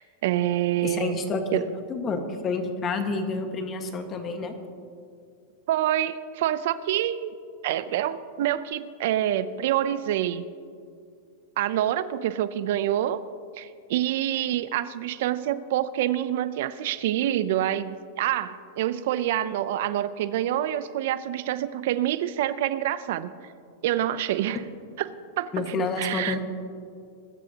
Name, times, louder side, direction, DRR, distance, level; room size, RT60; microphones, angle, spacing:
voice 1, 0.0-1.2 1.5-1.7 5.7-7.3 7.6-10.4 11.6-13.2 13.6-23.3 23.8-24.6 25.0-25.1 25.4-26.4, right 12 dB, 65° right, 15 dB, 0.5 m, -27 dB
voice 2, 0.8-1.6 1.9-4.5 25.5-26.4, left 3 dB, 30° left, 5 dB, 1.6 m, -29 dB
21.5 x 13.0 x 2.9 m, 2.3 s
hypercardioid pair, 130°, 0 cm